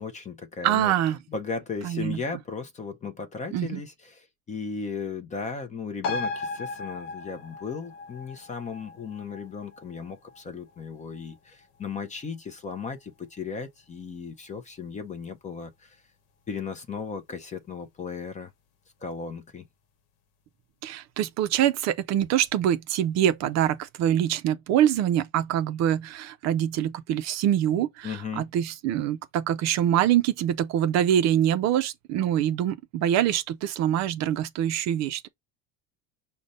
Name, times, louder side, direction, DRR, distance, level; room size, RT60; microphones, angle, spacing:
voice 1, 0.0-0.9 1.3-16.0 16.5-18.5 19.0-19.6 28.0-28.5, left 5 dB, 20° left, 0.5 m, -36 dB
voice 2, 0.6-1.2 1.8-2.2 3.5-3.8 20.8-35.3, right 11 dB, 45° right, 0.4 m, -24 dB
sound 1, 6.0-13.0 13.3-13.4, left 3 dB, 85° left, 1.0 m, -37 dB
5.0 x 2.2 x 3.9 m
supercardioid pair, 130°, 39 cm